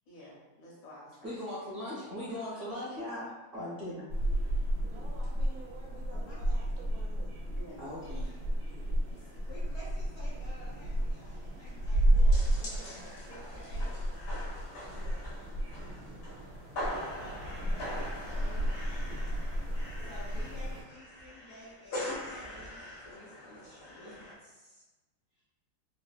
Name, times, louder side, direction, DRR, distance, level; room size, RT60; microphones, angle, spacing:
voice 1, 0.1-1.3 7.6-7.9 9.0-9.3 15.1-15.2 17.8-18.1, equal, 75° left, -5 dB, 1.6 m, -51 dB
voice 2, 1.2-4.1 7.8-8.4, left 1 dB, 40° right, -10 dB, 0.8 m, -39 dB
voice 3, 2.3-2.6 6.1-6.4 9.5-13.9 17.1-18.7 20.0-24.8 25.3-25.4, equal, 90° left, -8 dB, 0.8 m, -52 dB
sound 1, 4.1-20.8, right 1 dB, 90° right, 0.8 m, -32 dB
voice 4, 4.8-7.4 12.0-13.6 14.8-15.3, right 2 dB, 75° right, -2 dB, 1.3 m, -52 dB
sound 2, 8.2-8.4 8.7-8.8 9.2-9.5 9.8-9.9 10.2-24.3, left 1 dB, 55° left, 1.0 m, -43 dB
3.7 x 2.0 x 2.3 m, 1.1 s
omnidirectional pair, 2.3 m